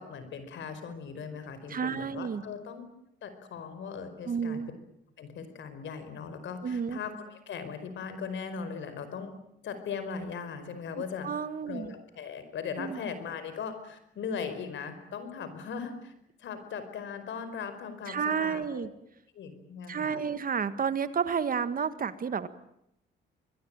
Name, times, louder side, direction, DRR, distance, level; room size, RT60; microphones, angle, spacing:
voice 1, 0.0-2.8 3.2-4.6 5.2-9.3 9.6-11.3 11.7-16.1 16.4-18.9 19.3-20.2, left 6 dB, 70° left, 10 dB, 5.0 m, -39 dB
voice 2, 1.7-2.4 4.3-4.7 6.6-7.0 11.2-11.9 12.8-13.0 18.1-18.9 19.9-22.5, right 6 dB, 45° right, 13 dB, 1.7 m, -31 dB
25.0 x 21.5 x 9.0 m, 0.79 s
cardioid pair, 90°, 20 cm